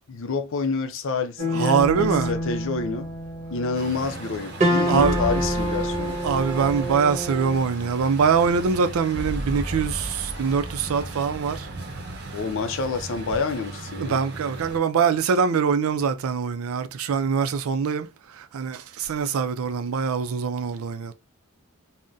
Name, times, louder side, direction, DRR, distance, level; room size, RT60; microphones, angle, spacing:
voice 1, 0.1-3.1 3.5-6.2 12.3-14.2, left 4 dB, 60° left, 0.5 m, -28 dB
sound 1, 1.4-7.6, equal, 30° right, 1.2 m, -27 dB
voice 2, 1.5-2.3 4.9-5.2 6.2-11.7 14.0-21.1, right 6 dB, 70° right, 0.4 m, -23 dB
sound 2, 1.8-11.2, equal, ahead, 0.4 m, -36 dB
Truck, 3.7-14.8, right 2 dB, 50° right, 0.8 m, -38 dB
3.6 x 2.1 x 2.6 m
head